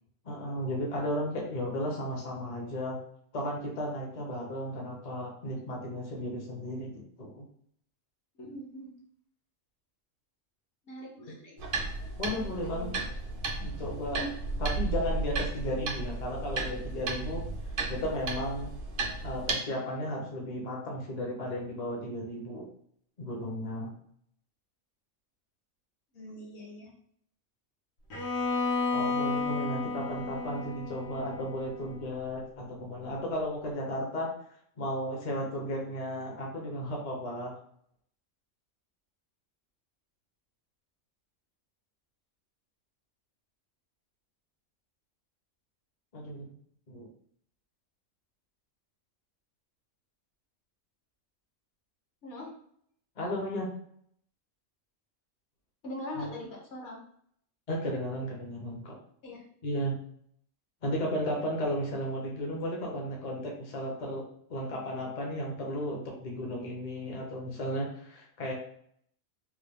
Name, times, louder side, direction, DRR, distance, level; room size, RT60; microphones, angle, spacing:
voice 1, 0.2-3.0 3.3-7.5 12.2-12.9 13.6-14.2 14.6-17.4 17.9-18.7 19.2-22.7 23.2-23.9 28.9-34.3 34.8-37.5 46.1-46.5 46.9-47.1 53.2-53.7 56.2-56.3 57.7-58.9 59.6-60.0 60.8-64.2 64.5-68.5, equal, 40° left, -1 dB, 0.6 m, -34 dB
voice 2, 8.4-8.9 10.9-11.6 12.3-12.9 14.2-14.3 26.1-26.9 52.2-52.5 55.8-57.0 59.2-59.4, left 1 dB, 60° left, -1 dB, 1.1 m, -42 dB
sound 1, 11.6-19.5, right 3 dB, 55° right, 0.7 m, -34 dB
Bowed string instrument, 28.1-32.1, left 4 dB, 85° left, 1.3 m, -32 dB
3.0 x 2.2 x 3.4 m, 0.65 s
omnidirectional pair, 1.4 m